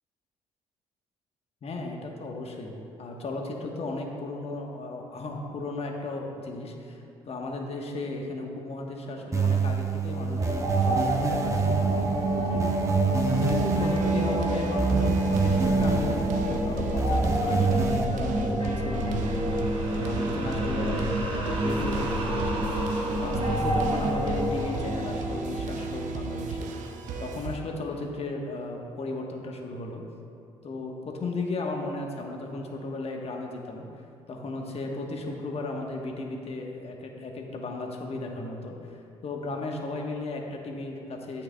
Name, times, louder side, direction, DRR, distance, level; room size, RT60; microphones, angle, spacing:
voice 1, 1.6-12.6 12.9-13.0 13.3-19.4 19.9-22.8 23.2-30.0 30.6-33.9 34.3-41.4, left 2 dB, 45° left, 1 dB, 1.2 m, -35 dB
sound 1, 9.3-18.0, right 4 dB, 20° right, 0.9 m, -28 dB
sound 2, 10.4-26.6, right 1 dB, 35° right, 1.4 m, -28 dB
sound 3, 13.2-27.6, right 4 dB, 65° right, 0.7 m, -35 dB
10.0 x 8.4 x 2.3 m, 2.5 s
hypercardioid pair, 50°, 14 cm